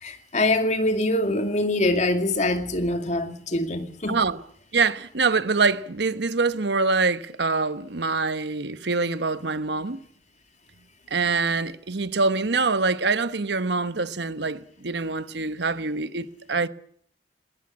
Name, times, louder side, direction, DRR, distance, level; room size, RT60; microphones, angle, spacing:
voice 1, 0.0-4.2, left 1 dB, 40° left, 2.5 m, -24 dB
voice 2, 4.1-4.4 4.7-10.0 11.1-16.7, right 4 dB, 65° right, 1.1 m, -25 dB
20.0 x 18.5 x 9.9 m
head